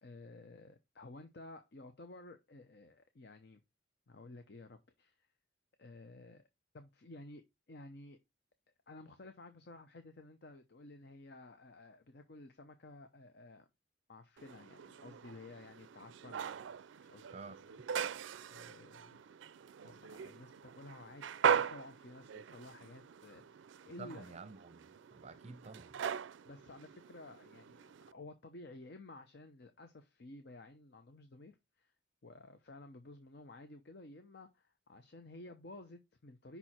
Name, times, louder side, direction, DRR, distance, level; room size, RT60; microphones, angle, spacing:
voice 1, 0.0-3.6 4.1-5.3 5.8-6.4 6.7-8.2 8.9-13.7 14.1-16.7 17.0-17.6 18.0-19.2 19.8-21.2 21.5-24.4 25.9-26.0 26.4-31.9 32.2-36.6, left 2 dB, 55° left, 0.7 m, -53 dB
sound 1, 14.4-28.1, right 7 dB, 70° right, 0.4 m, -40 dB
voice 2, 24.0-26.0, right 4 dB, 35° right, 0.7 m, -50 dB
5.5 x 4.5 x 4.2 m
head